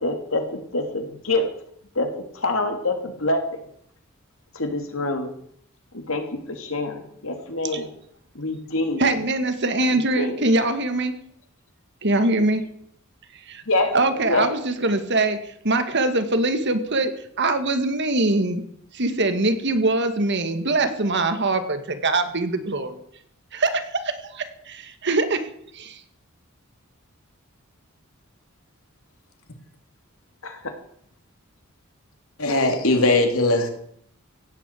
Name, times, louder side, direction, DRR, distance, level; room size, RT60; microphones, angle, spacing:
voice 1, 0.0-1.5 1.9-2.1 2.3-3.4 4.5-5.3 5.9-7.9 8.3-9.0 9.9-10.4 13.7-14.0 14.3-14.4 30.4-30.6 32.5-32.8, left 2 dB, 70° left, 5 dB, 2.9 m, -26 dB
voice 2, 9.0-11.1 12.0-12.6 13.5-13.6 13.9-15.4 15.6-17.1 17.4-18.6 18.9-23.0 23.5-25.4 25.7-26.0, right 2 dB, 60° right, 9 dB, 2.0 m, -23 dB
voice 3, 32.4-33.7, left 2 dB, 90° left, 4 dB, 3.0 m, -19 dB
16.5 x 8.9 x 8.4 m, 0.67 s
head